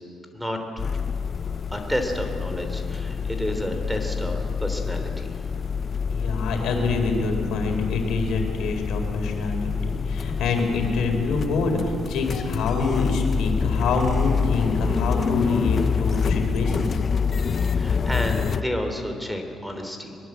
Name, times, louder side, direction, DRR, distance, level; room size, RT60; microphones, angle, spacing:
voice 1, 0.3-0.9 1.7-5.3 17.6-20.2, equal, ahead, 5 dB, 3.3 m, -30 dB
sound 1, 0.8-18.6, left 6 dB, 45° left, 0.7 m, -27 dB
voice 2, 6.1-17.0, left 3 dB, 80° left, 3 dB, 4.3 m, -26 dB
22.5 x 21.5 x 7.9 m, 2.6 s
cardioid pair, 90°, 0 cm